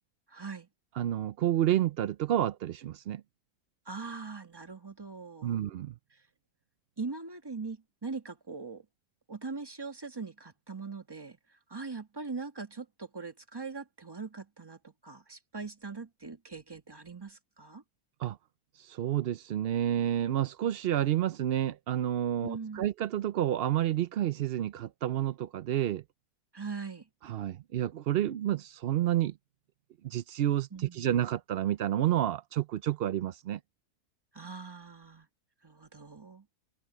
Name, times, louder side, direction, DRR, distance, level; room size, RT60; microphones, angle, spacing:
voice 1, 0.3-0.7 3.8-5.6 6.1-6.2 7.0-8.8 9.3-11.4 11.7-17.8 22.4-22.9 26.5-27.1 30.7-31.1 34.3-35.3 35.6-36.4, right 4 dB, 15° right, 1.3 m, -41 dB
voice 2, 1.0-3.2 5.4-5.9 18.2-18.4 18.8-26.0 27.2-29.3 30.0-33.6, right 11 dB, 90° right, 0.5 m, -29 dB
omnidirectional pair, 1.6 m